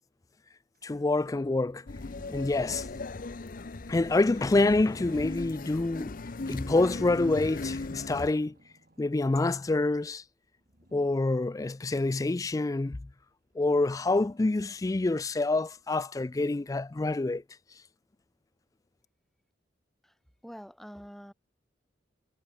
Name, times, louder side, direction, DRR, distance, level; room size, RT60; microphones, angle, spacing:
sound 1, 0.7-16.2, right 1 dB, 50° right, 4.5 m, -66 dB
voice 1, 0.8-1.8 2.3-2.9 3.9-6.1 6.5-8.6 9.0-10.2 10.9-13.1 13.6-17.4, left 2 dB, 20° left, 0.3 m, -27 dB
sound 2, 1.9-8.3, left 3 dB, 45° left, 0.7 m, -38 dB
voice 2, 20.4-21.3, equal, ahead, 3.3 m, -45 dB
head